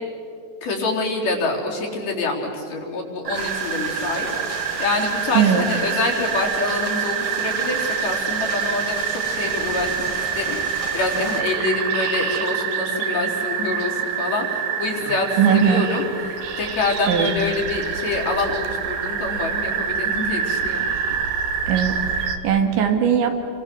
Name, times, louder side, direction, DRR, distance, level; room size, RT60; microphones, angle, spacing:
voice 1, 0.6-20.9, left 3 dB, 55° left, -2 dB, 5.7 m, -26 dB
sound 1, 3.3-11.4, right 1 dB, 10° right, 1.6 m, -34 dB
sound 2, 3.3-22.4, right 7 dB, 60° right, 2.8 m, -26 dB
voice 2, 5.3-5.6 15.4-15.8 17.1-17.3 21.7-23.4, right 8 dB, 80° right, 5 dB, 4.5 m, -19 dB
30.0 x 25.0 x 7.9 m, 2.5 s
omnidirectional pair, 5.3 m